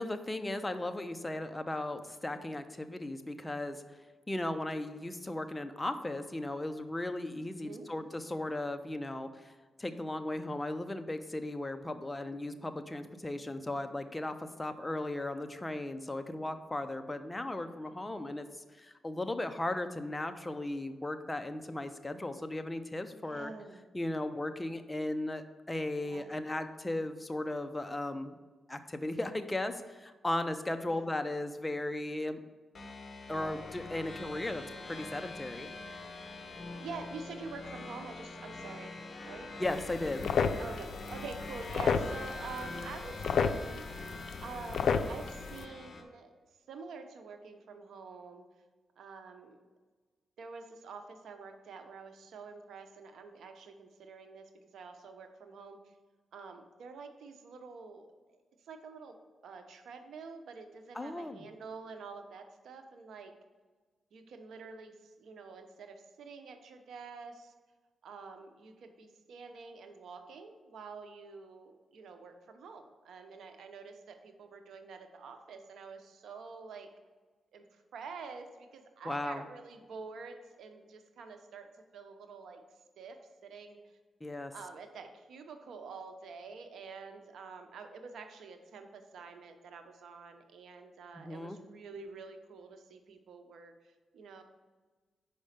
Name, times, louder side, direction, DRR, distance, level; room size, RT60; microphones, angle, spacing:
voice 1, 0.0-3.8 4.3-9.5 9.8-18.5 18.7-23.5 23.9-28.4 28.7-32.4 33.3-35.7 39.6-40.3 60.9-61.4 79.0-79.4 84.2-84.5 91.1-91.6, left 1 dB, 15° left, 8 dB, 0.6 m, -36 dB
voice 2, 7.6-8.1 12.4-12.6 17.9-18.0 23.2-23.8 26.0-26.3 30.9-31.1 36.8-39.0 39.3-39.5 40.6-44.0 44.4-46.3 46.7-48.5 49.0-49.6 50.4-56.0 56.3-59.2 59.4-63.4 64.1-67.5 68.0-76.9 77.5-82.6 83.0-83.8 84.5-94.4, right 4 dB, 80° right, 6 dB, 0.8 m, -47 dB
sound 1, 32.8-46.0, left 2 dB, 45° left, 1.1 m, -44 dB
sound 2, 39.6-45.6, left 6 dB, 70° left, 0.5 m, -33 dB
5.4 x 5.0 x 6.6 m, 1.4 s
cardioid pair, 85°, 0 cm